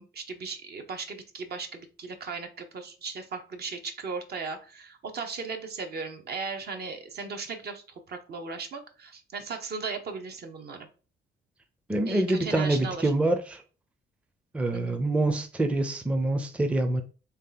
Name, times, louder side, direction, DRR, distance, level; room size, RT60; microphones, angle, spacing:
voice 1, 0.0-10.9 12.1-13.1 14.7-15.0, right 4 dB, 55° right, 0.7 m, -37 dB
voice 2, 11.9-13.6 14.5-17.0, right 2 dB, 5° right, 0.5 m, -26 dB
3.2 x 2.8 x 3.8 m
cardioid pair, 90°, 20 cm